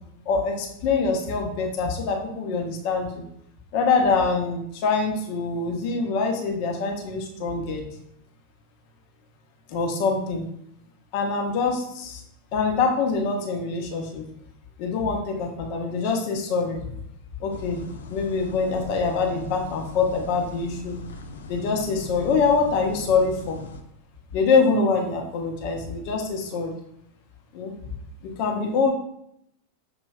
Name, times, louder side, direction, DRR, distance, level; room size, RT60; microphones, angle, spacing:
voice 1, 0.3-3.2 3.7-7.9 9.7-10.5 11.1-12.2 12.5-14.3 14.8-17.0 17.4-17.8 18.1-21.0 21.5-23.6 24.3-26.8 27.5-27.7 28.4-28.9, left 4 dB, 45° left, 2 dB, 0.9 m, -24 dB
sound 1, 17.5-23.8, left 4 dB, 65° left, 0.5 m, -39 dB
6.4 x 3.0 x 2.4 m, 0.74 s
figure-of-eight pair, 90°, 0 cm